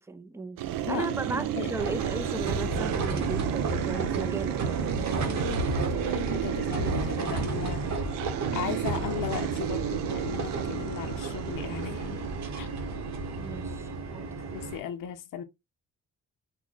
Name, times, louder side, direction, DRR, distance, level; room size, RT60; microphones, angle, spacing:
voice 1, 0.1-5.5 13.4-14.3, right 3 dB, 10° right, 0.4 m, -36 dB
sound 1, 0.6-13.5, right 12 dB, 70° right, 0.5 m, -33 dB
voice 2, 0.9-1.7 5.2-8.1 8.5-12.7 14.5-15.4, left 10 dB, 65° left, 0.6 m, -37 dB
sound 2, 1.7-14.8, right 3 dB, 50° right, 1.1 m, -32 dB
3.0 x 2.2 x 3.8 m
cardioid pair, 75°, 36 cm